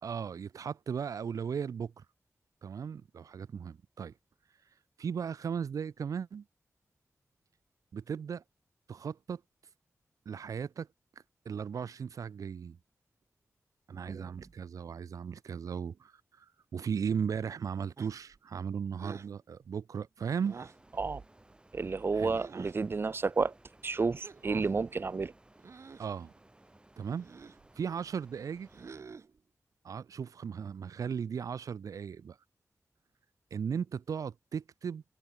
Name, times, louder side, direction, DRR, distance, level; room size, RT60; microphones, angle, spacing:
voice 1, 0.0-2.0 2.6-4.1 5.0-6.4 7.9-8.4 8.9-9.4 10.3-10.9 11.5-12.8 13.9-20.6 22.1-22.4 26.0-26.3 27.0-27.3 27.8-28.7 29.8-32.4 33.5-35.0, right 7 dB, 85° right, 0.6 m, -36 dB
sound 1, 18.0-18.4 19.0-19.3 20.4-20.9 22.3-22.8 24.2-24.8 25.6-26.1 27.1-27.7 28.7-29.4, right 5 dB, 60° right, 2.0 m, -48 dB
sound 2, 20.2-29.0, right 1 dB, 15° right, 4.8 m, -61 dB
voice 2, 21.7-23.5 23.8-25.3, right 4 dB, 40° right, 0.6 m, -31 dB
wide cardioid pair, 115°, 6 cm